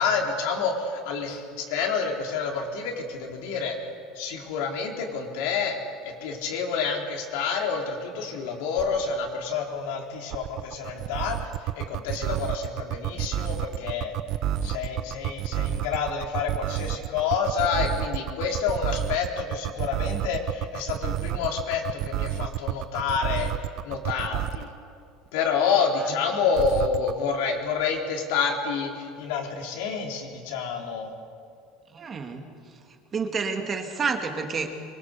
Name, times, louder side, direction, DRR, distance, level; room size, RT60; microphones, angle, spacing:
voice 1, 0.0-3.8 4.2-5.8 6.0-14.1 14.6-23.5 23.8-24.7 25.3-31.1, left 5 dB, 80° left, 1 dB, 3.9 m, -28 dB
sound 1, 10.3-24.7 26.5-27.1, right 12 dB, 45° right, 0.6 m, -29 dB
voice 2, 31.9-32.4 33.1-34.7, right 5 dB, 25° right, 4 dB, 1.8 m, -29 dB
24.5 x 23.0 x 6.8 m, 2.2 s
cardioid pair, 165°, 0 cm